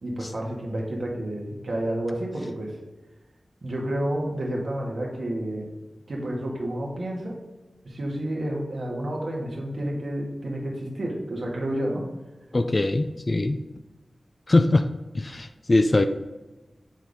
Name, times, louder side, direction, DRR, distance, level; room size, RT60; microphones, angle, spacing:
voice 1, 0.0-2.8 3.6-5.7 6.1-7.3 7.8-12.0, right 1 dB, 70° right, -2 dB, 1.7 m, -30 dB
voice 2, 12.5-13.6 14.5-14.9 15.1-16.0, left 2 dB, 40° left, 8 dB, 0.4 m, -21 dB
7.2 x 4.0 x 3.6 m, 1.1 s
cardioid pair, 50°, 0 cm